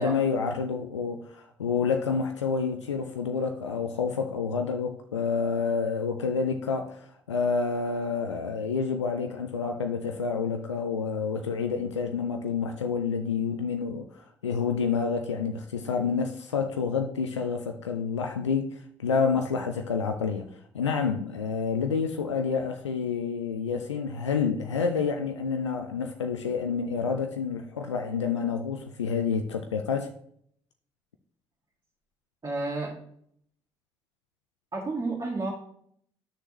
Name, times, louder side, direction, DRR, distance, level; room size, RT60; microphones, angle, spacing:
voice 1, 0.0-30.1, left 5 dB, 85° left, 0.5 m, -29 dB
voice 2, 32.4-33.0 34.7-35.5, right 2 dB, 30° right, 2.5 m, -30 dB
11.0 x 6.5 x 3.0 m
figure-of-eight pair, 45°, 15 cm